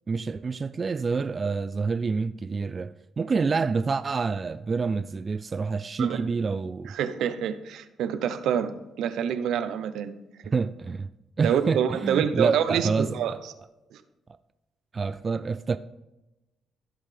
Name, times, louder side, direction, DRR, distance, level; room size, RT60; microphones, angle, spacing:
voice 1, 0.1-6.9 10.5-11.1 11.4-13.4 14.9-15.8, right 4 dB, 35° right, 0.3 m, -27 dB
voice 2, 6.9-10.1 11.4-13.4 13.9-14.0, right 8 dB, 80° right, 0.7 m, -27 dB
14.5 x 5.5 x 3.4 m
cardioid pair, 90°, 0 cm